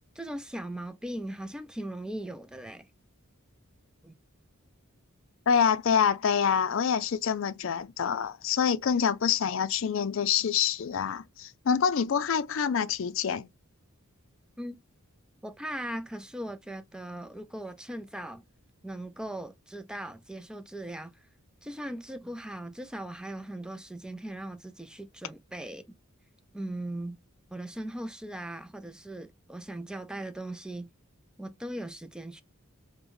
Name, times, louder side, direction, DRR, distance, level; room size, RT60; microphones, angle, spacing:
voice 1, 0.2-2.9 4.0-4.2 5.5-5.7 14.6-14.8 15.4-18.4 18.8-21.3 21.6-25.9 26.5-27.2 27.5-30.9 31.4-32.4, right 1 dB, 5° right, 0.3 m, -39 dB
voice 2, 5.5-13.5, left 7 dB, 60° left, 0.4 m, -26 dB
5.3 x 2.1 x 3.0 m
head